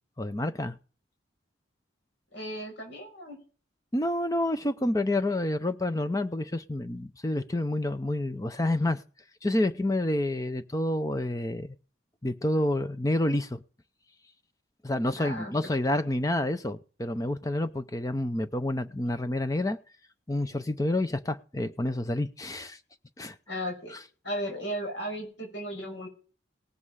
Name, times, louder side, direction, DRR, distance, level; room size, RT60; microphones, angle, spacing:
voice 1, 0.2-0.8 3.9-9.0 9.4-11.8 12.2-13.6 14.8-19.8 20.3-22.8 23.2-23.4, left 1 dB, 20° left, 10 dB, 0.5 m, -28 dB
voice 2, 2.3-3.4 15.2-15.5 23.5-24.0 24.2-26.1, equal, 75° left, 2 dB, 5.9 m, -35 dB
18.0 x 7.6 x 4.8 m, 0.38 s
head